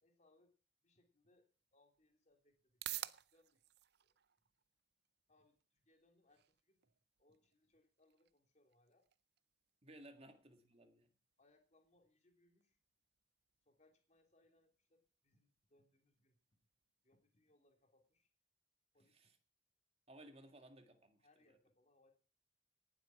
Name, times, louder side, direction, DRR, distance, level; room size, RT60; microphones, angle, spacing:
voice 1, 0.0-0.5 0.8-3.6 4.0-4.2 5.3-6.8 7.2-9.1 11.4-12.8 13.6-16.4 17.0-18.3 18.9-19.2 21.2-22.1, left 2 dB, 40° left, 4 dB, 3.2 m, -75 dB
sound 1, 1.3-18.3, right 14 dB, 60° right, 0.6 m, -57 dB
voice 2, 9.8-11.1 19.1-19.3 20.1-21.6, right 1 dB, 35° right, 6 dB, 2.0 m, -60 dB
18.0 x 7.8 x 5.8 m, 0.38 s
head